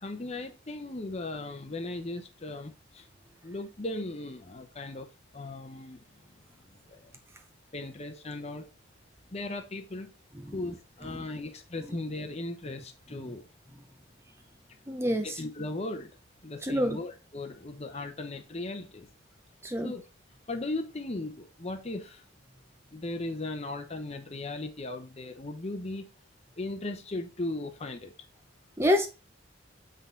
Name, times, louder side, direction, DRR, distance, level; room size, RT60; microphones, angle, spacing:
voice 1, 0.0-3.0 3.4-5.1 5.3-6.0 6.9-7.0 7.7-8.7 9.3-10.1 10.5-13.4 15.2-16.1 16.4-19.1 19.8-20.0 20.5-22.2 22.9-26.1 26.6-28.1, left 2 dB, 35° left, 0.9 m, -37 dB
voice 2, 14.9-15.4 16.6-17.0 19.6-19.9 28.8-29.1, left 1 dB, 15° right, 0.7 m, -27 dB
7.8 x 3.9 x 3.9 m
head